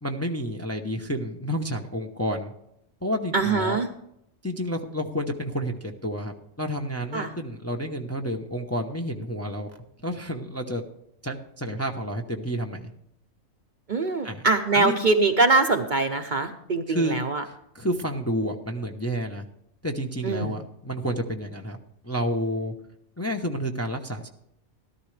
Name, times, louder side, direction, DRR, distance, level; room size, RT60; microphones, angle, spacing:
voice 1, 0.0-2.5 3.0-3.8 4.4-9.7 10.0-10.8 11.2-12.9 14.2-14.5 14.7-15.0 16.9-17.2 17.7-19.4 19.8-21.8 22.0-22.7 23.2-24.3, equal, 15° left, 3 dB, 0.7 m, -30 dB
voice 2, 3.3-3.9 7.1-7.3 13.9-17.4 20.2-20.5, right 3 dB, 45° right, 5 dB, 0.8 m, -23 dB
13.5 x 13.0 x 3.3 m, 0.76 s
omnidirectional pair, 1.3 m